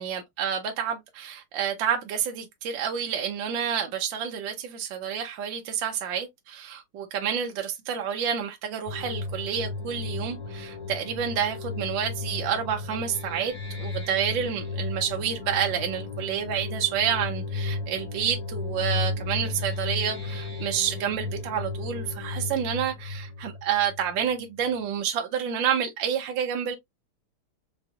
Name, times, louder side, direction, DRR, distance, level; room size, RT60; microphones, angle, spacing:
voice 1, 0.0-26.8, right 8 dB, 70° right, 1.3 m, -29 dB
sound 1, 8.9-24.3, left 3 dB, 20° left, 1.3 m, -34 dB
4.9 x 2.8 x 2.3 m
omnidirectional pair, 2.4 m